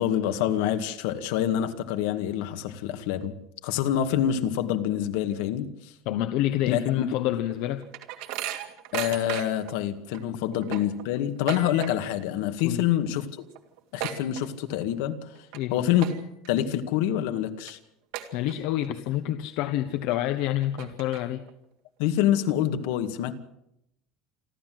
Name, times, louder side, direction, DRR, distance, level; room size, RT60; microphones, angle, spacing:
voice 1, 0.0-3.3 3.6-5.9 6.7-7.0 8.9-13.3 13.9-15.2 15.7-16.1 16.5-17.8 22.0-23.3, left 11 dB, 75° left, 8 dB, 2.1 m, -26 dB
voice 2, 6.0-7.8 12.6-12.8 15.5-15.9 18.3-21.4, left 13 dB, 60° left, 8 dB, 1.2 m, -28 dB
sound 1, 7.3-9.7 10.1-10.2 10.5-12.2 12.5-12.9 13.2-13.3 13.5-14.9 15.3-15.6 16.0-16.5 17.0-17.1 17.7-17.8 18.1-18.9 19.3-19.4 20.1-20.2 20.6-21.5, right 12 dB, 65° right, 2.6 m, -36 dB
28.5 x 12.5 x 7.8 m, 0.80 s
cardioid pair, 170°, 0 cm